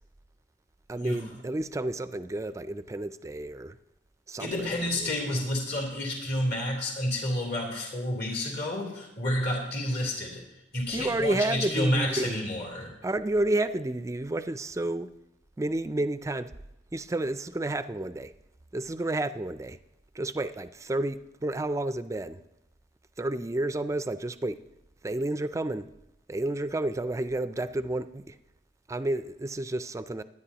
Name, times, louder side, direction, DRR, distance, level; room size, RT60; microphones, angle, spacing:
voice 1, 0.9-3.8 4.3-5.1 10.9-12.5 13.0-15.1 15.6-16.5 16.9-18.3 18.7-19.8 20.1-22.4 23.2-24.6 25.0-25.9 26.3-28.4 28.9-30.2, right 2 dB, 15° right, 0.4 m, -31 dB
voice 2, 4.4-10.4 10.7-12.9, left 1 dB, 60° left, 3.3 m, -30 dB
22.5 x 9.6 x 2.9 m
head